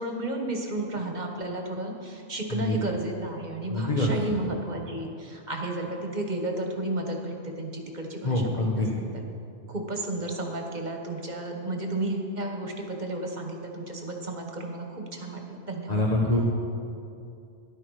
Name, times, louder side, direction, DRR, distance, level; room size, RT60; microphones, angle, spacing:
voice 1, 0.0-9.1 9.7-16.1, right 2 dB, 40° right, 2 dB, 1.4 m, -33 dB
voice 2, 3.7-4.4 8.2-8.9 15.9-16.4, left 1 dB, 35° left, -2 dB, 1.3 m, -25 dB
13.0 x 11.0 x 4.9 m, 2.5 s
omnidirectional pair, 1.2 m